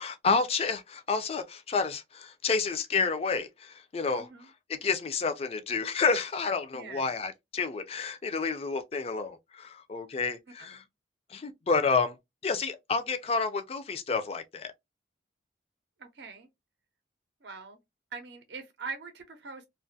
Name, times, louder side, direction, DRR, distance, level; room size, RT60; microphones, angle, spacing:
voice 1, 0.0-4.3 4.7-10.8 11.3-12.2 12.4-14.7, left 4 dB, 30° left, 0.3 m, -30 dB
voice 2, 4.2-4.5 6.7-7.1 10.6-10.8 16.0-16.5 17.4-17.8 18.1-19.7, right 4 dB, 60° right, 0.6 m, -42 dB
2.4 x 2.3 x 2.6 m
head